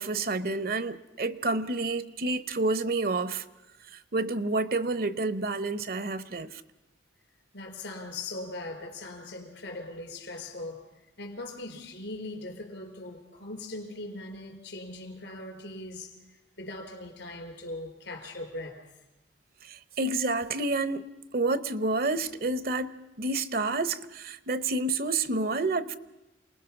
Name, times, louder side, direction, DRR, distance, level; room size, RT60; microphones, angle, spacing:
voice 1, 0.0-3.4 4.1-6.6 19.6-21.1 21.3-26.0, right 3 dB, 50° right, 0.8 m, -29 dB
voice 2, 7.5-10.8 11.2-16.1 16.6-18.8, left 2 dB, 75° left, 4.3 m, -40 dB
28.0 x 20.0 x 5.8 m
head